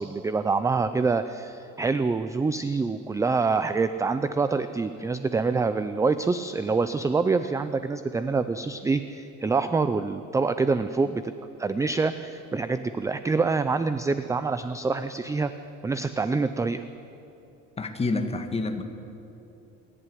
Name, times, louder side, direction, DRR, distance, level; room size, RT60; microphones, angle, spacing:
voice 1, 0.0-11.3 11.6-15.5 15.8-16.8, right 4 dB, 10° right, 11 dB, 0.4 m, -26 dB
voice 2, 17.8-18.8, left 3 dB, 20° left, 6 dB, 1.6 m, -28 dB
26.5 x 11.0 x 9.9 m, 2.9 s
cardioid pair, 150°, 34 cm